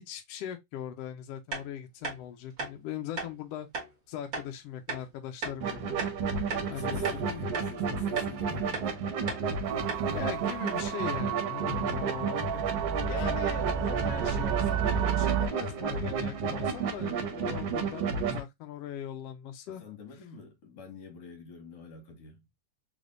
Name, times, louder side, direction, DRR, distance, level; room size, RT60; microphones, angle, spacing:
voice 1, 0.0-3.7 4.1-6.0 6.7-7.2 10.1-12.4 13.1-19.8, left 10 dB, 80° left, 1.4 m, -40 dB
sound 1, 1.5-1.6 2.0-2.2 2.6-2.7 3.2-3.3 3.7-3.9 4.3-4.5 4.9-5.0 5.4-5.6 6.0-6.7 7.0-7.2 7.5-7.7 8.2-8.3 8.7-8.9 9.3-9.4 9.9-10.0 10.3-10.4 10.7-10.9, right 4 dB, 40° right, 1.5 m, -36 dB
sound 2, 5.6-18.4, right 5 dB, 65° right, 1.9 m, -32 dB
voice 2, 6.6-8.9 11.6-13.2 19.7-22.5, left 3 dB, 55° left, 2.3 m, -47 dB
sound 3, 9.6-15.5, right 9 dB, 85° right, 2.0 m, -32 dB
4.5 x 3.4 x 2.4 m
omnidirectional pair, 3.3 m